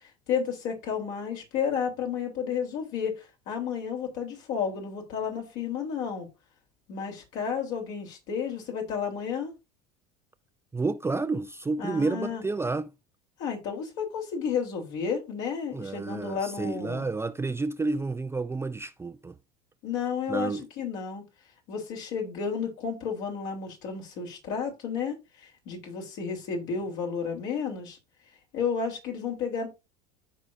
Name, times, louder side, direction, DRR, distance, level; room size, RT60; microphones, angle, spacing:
voice 1, 0.0-6.3 6.9-9.5 11.8-12.4 13.4-17.1 19.8-21.2 21.7-28.0 28.5-29.7, left 6 dB, 65° left, 3.5 m, -32 dB
voice 2, 10.7-12.9 15.7-19.3 20.3-20.7, right 3 dB, 10° right, 0.5 m, -30 dB
14.5 x 4.9 x 2.6 m
hypercardioid pair, 85°, 21 cm